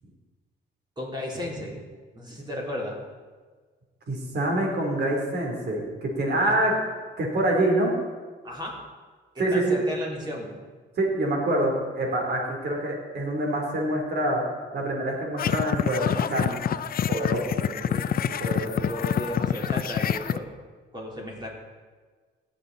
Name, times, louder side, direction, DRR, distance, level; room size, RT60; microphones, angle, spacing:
voice 1, 1.0-1.8 2.1-3.0 6.5-6.6 8.4-8.8 9.3-10.5 17.4-18.4 18.8-20.5 20.9-21.5, left 1 dB, 20° right, -2 dB, 3.9 m, -34 dB
voice 2, 4.1-6.7 7.2-8.0 9.4-9.8 11.0-14.5 14.7-16.6 17.1-17.6 18.4-18.9, right 1 dB, 55° right, 0 dB, 3.4 m, -26 dB
sound 1, 15.4-20.4, left 8 dB, 50° left, 0.5 m, -27 dB
17.5 x 7.4 x 4.1 m, 1.4 s
cardioid pair, 90°, 20 cm